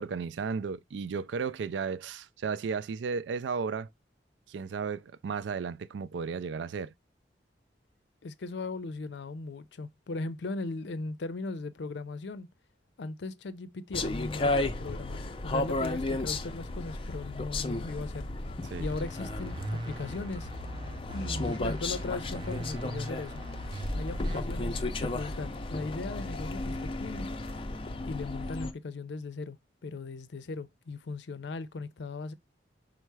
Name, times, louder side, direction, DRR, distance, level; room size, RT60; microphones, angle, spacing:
voice 1, 0.0-3.9 4.5-6.9 18.7-18.9, right 5 dB, 85° right, 0.3 m, -34 dB
voice 2, 8.2-12.5 13.0-18.3 18.8-20.5 21.1-23.4 23.9-27.3 28.1-29.6 29.8-32.3, left 3 dB, 80° left, 0.5 m, -38 dB
sound 1, 13.9-28.7, left 2 dB, 30° left, 0.4 m, -34 dB
sound 2, 18.8-24.4, right 1 dB, 25° right, 0.4 m, -39 dB
5.5 x 2.0 x 4.6 m
head